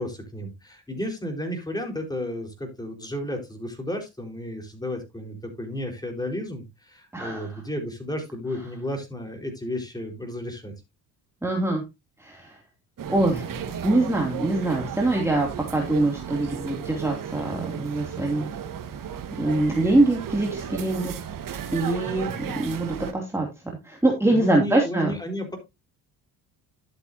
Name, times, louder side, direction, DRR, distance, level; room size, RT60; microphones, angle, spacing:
voice 1, 0.0-10.7 22.0-22.6 24.3-25.6, left 1 dB, 10° left, 3 dB, 4.5 m, -33 dB
voice 2, 7.1-7.5 11.4-11.8 12.2-12.5 13.1-18.5 19.4-21.1 21.7-25.1, right 2 dB, 5° right, 0 dB, 2.7 m, -24 dB
sound 1, 13.0-23.1, right 8 dB, 50° right, 1.7 m, -34 dB
12.0 x 7.9 x 2.8 m, 0.22 s
supercardioid pair, 80°, 40 cm